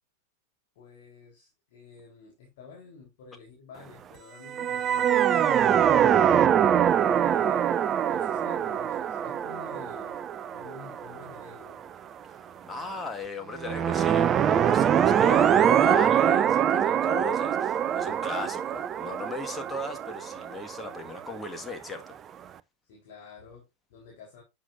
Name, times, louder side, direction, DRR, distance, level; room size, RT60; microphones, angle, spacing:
voice 1, 0.8-6.1 7.2-10.2 10.5-11.8 22.8-24.4, left 4 dB, 50° left, 3.6 m, -49 dB
sound 1, 4.5-11.7 13.6-21.4, right 9 dB, 25° right, 0.5 m, -24 dB
voice 2, 12.6-22.1, left 2 dB, 10° left, 1.7 m, -37 dB
11.5 x 7.7 x 2.6 m
figure-of-eight pair, 90°, 0 cm